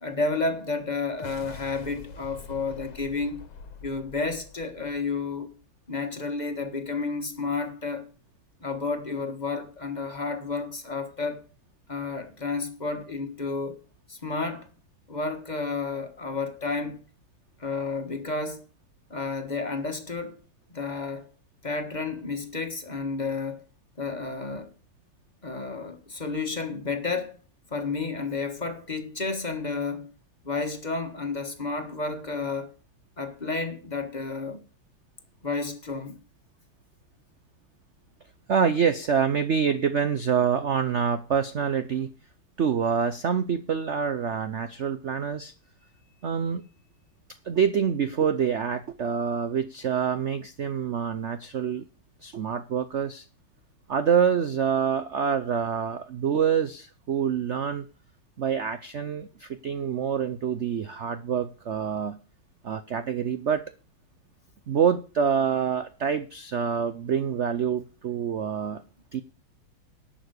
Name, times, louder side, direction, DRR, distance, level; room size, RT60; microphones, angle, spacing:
voice 1, 0.0-3.4 3.8-5.5 5.9-8.0 8.6-11.5 11.9-13.8 14.1-14.7 15.1-17.0 17.6-18.6 19.1-20.4 20.7-21.3 21.6-23.6 24.0-24.7 25.4-27.4 27.7-30.1 30.4-32.7 33.2-34.6 35.4-36.2, left 4 dB, 25° left, 1.4 m, -31 dB
sound 1, 1.1-5.6, left 4 dB, 75° left, 2.0 m, -45 dB
voice 2, 38.5-42.1 42.6-45.5 46.2-46.6 47.4-51.8 52.2-53.2 53.9-57.9 58.4-62.2 62.6-63.6 64.7-68.8 69.1-69.2, right 7 dB, 80° right, 0.6 m, -26 dB
11.5 x 6.6 x 8.1 m
omnidirectional pair, 2.2 m